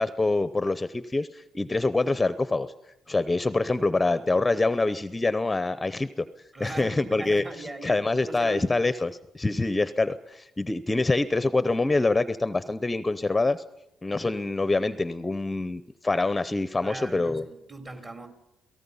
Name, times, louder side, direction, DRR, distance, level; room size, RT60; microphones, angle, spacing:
voice 1, 0.0-2.7 3.1-6.3 6.6-13.6 14.0-17.5, left 2 dB, 20° left, 13 dB, 0.7 m, -25 dB
voice 2, 6.5-8.7 16.8-18.3, right 2 dB, 35° right, 6 dB, 3.6 m, -39 dB
29.5 x 18.0 x 5.6 m, 0.85 s
cardioid pair, 90°, 0 cm